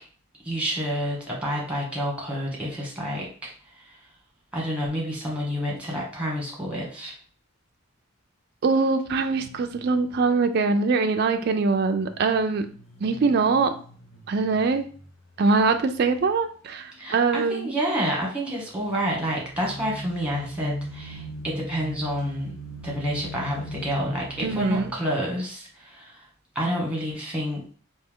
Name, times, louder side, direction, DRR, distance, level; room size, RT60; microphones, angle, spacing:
voice 1, 0.4-4.0 4.5-7.1 17.0-22.5 22.8-26.3 26.5-27.7, equal, 5° right, -3 dB, 1.2 m, -29 dB
voice 2, 8.6-12.7 13.0-13.7 14.3-14.9 15.4-17.7 24.4-24.9, right 4 dB, 50° right, 7 dB, 0.3 m, -23 dB
sound 1, 9.3-10.3 11.8-16.3 16.7-17.2 18.6-24.9, equal, 70° left, 1.0 m, -39 dB
3.3 x 2.8 x 3.6 m, 0.42 s
head